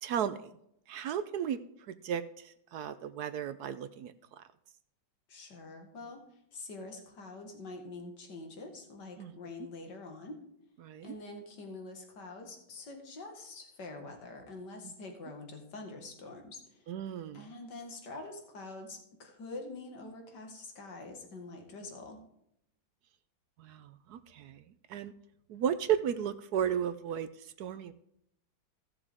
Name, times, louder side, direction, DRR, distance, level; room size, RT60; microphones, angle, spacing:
voice 1, 0.0-0.5 0.9-1.6 1.9-4.4 9.2-9.3 10.8-11.2 16.9-17.5 23.6-24.6 24.9-25.1 25.5-27.9, right 9 dB, 70° right, 12 dB, 1.0 m, -34 dB
voice 2, 5.3-6.2 6.5-10.4 11.0-16.9 17.3-22.2, left 2 dB, 60° left, 3 dB, 2.5 m, -45 dB
16.0 x 7.0 x 3.6 m, 0.76 s
omnidirectional pair, 2.1 m